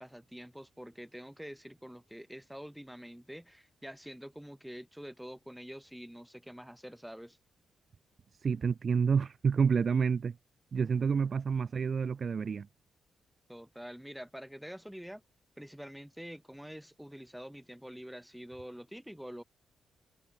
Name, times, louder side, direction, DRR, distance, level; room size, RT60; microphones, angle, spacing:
voice 1, 0.0-7.4 13.5-15.2 15.6-19.4, equal, 5° right, 6.9 m, -46 dB
voice 2, 8.4-10.3 10.7-12.7, right 6 dB, 50° right, 0.8 m, -28 dB
cardioid pair, 65°, 0 cm